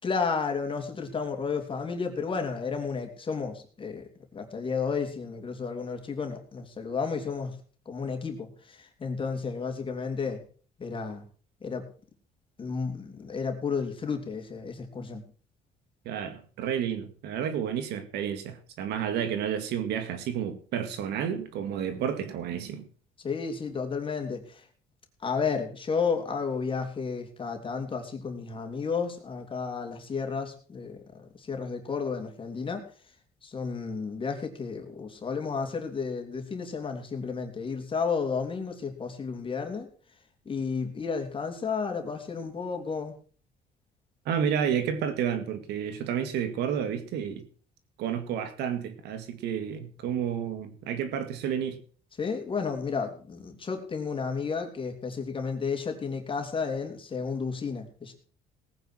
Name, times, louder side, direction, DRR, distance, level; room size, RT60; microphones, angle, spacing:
voice 1, 0.0-7.6 7.8-10.4 10.8-11.2 11.6-11.9 12.6-15.2 23.2-24.7 25.2-32.8 33.4-39.9 40.4-43.1 52.2-58.2, left 5 dB, 30° left, 3.2 m, -32 dB
voice 2, 16.1-22.9 44.3-47.5 48.0-51.8, right 8 dB, 85° right, 2.0 m, -31 dB
18.5 x 9.5 x 4.6 m
cardioid pair, 110°, 17 cm